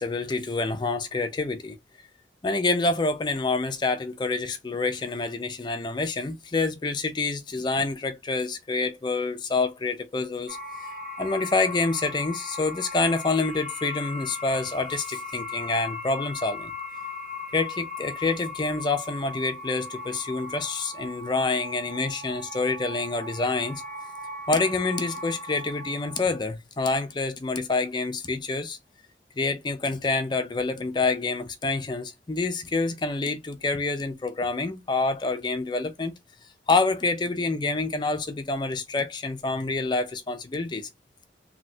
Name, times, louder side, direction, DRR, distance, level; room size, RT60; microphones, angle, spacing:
voice 1, 0.0-1.8 2.4-10.6 11.2-16.7 17.5-23.8 24.5-28.8 29.4-36.1 36.7-40.9, left 3 dB, 25° left, 0.4 m, -27 dB
sound 1, 10.5-26.4, left 2 dB, 55° right, 1.0 m, -38 dB
3.1 x 2.7 x 2.6 m
head